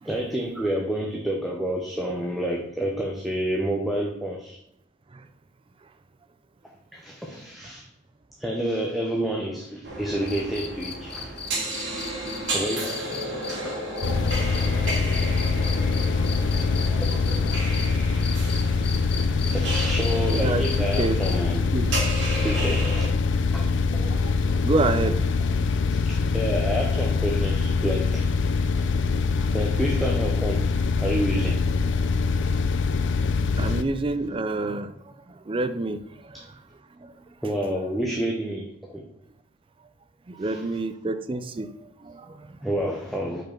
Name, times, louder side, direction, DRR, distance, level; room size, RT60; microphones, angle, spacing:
voice 1, 0.0-4.6 6.9-7.9 8.4-11.4 12.5-13.8 16.6-16.7 19.3-21.7 22.4-23.1 23.5-23.7 23.9-24.0 24.5-24.6 26.1-28.3 29.5-30.6 31.0-31.7 37.4-39.0 40.5-40.6 42.6-43.4, right 1 dB, ahead, -1 dB, 0.7 m, -29 dB
sound 1, 9.8-23.1, right 1 dB, 80° right, 2.4 m, -33 dB
sound 2, 10.3-17.9 18.2-21.6 23.2-23.3, left 6 dB, 60° left, 0.9 m, -37 dB
voice 2, 13.9-14.3 14.8-14.9 15.7-15.9 16.9-17.6 20.3-20.6 21.0-21.2 21.7-21.9 23.9-24.4 24.6-25.2 29.4-29.5 33.6-36.6 37.0-37.1 40.3-42.6, right 2 dB, 30° right, 11 dB, 0.4 m, -29 dB
sound 3, 14.0-33.8, left 4 dB, 80° left, 0.5 m, -24 dB
5.4 x 4.6 x 5.8 m, 0.75 s
head